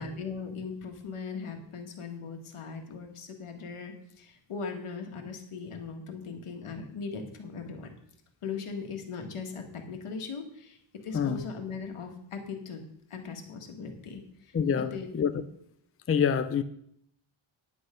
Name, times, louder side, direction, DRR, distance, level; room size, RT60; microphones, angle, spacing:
voice 1, 0.0-7.9 8.4-10.8 11.0-12.8 13.1-15.4, left 5 dB, 90° left, 4 dB, 1.9 m, -39 dB
voice 2, 11.1-11.4 14.5-15.3 16.1-16.6, left 7 dB, 30° left, 11 dB, 0.5 m, -26 dB
10.0 x 8.1 x 5.1 m, 0.70 s
wide cardioid pair, 170°, 49 cm